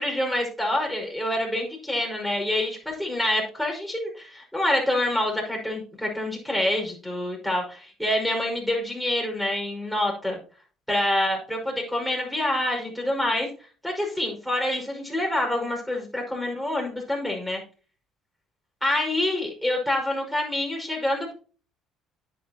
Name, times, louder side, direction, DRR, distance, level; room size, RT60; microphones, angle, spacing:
voice 1, 0.0-10.4 10.9-13.5 13.8-17.6 18.8-21.3, left 1 dB, 5° left, 0 dB, 5.5 m, -26 dB
10.5 x 9.4 x 2.9 m, 0.38 s
supercardioid pair, 85°, 0 cm